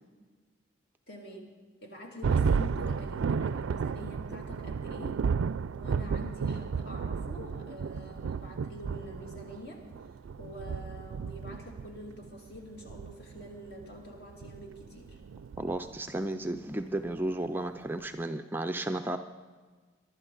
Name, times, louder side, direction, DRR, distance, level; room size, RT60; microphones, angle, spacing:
voice 1, 1.1-1.5 1.8-5.3 5.7-9.9 10.4-15.2, equal, 55° left, 0 dB, 2.6 m, -46 dB
Thunder, 2.2-16.2, right 5 dB, 85° right, 0.4 m, -33 dB
voice 2, 15.6-19.2, right 1 dB, 10° right, 7 dB, 0.4 m, -33 dB
23.0 x 12.0 x 3.9 m, 1.4 s
head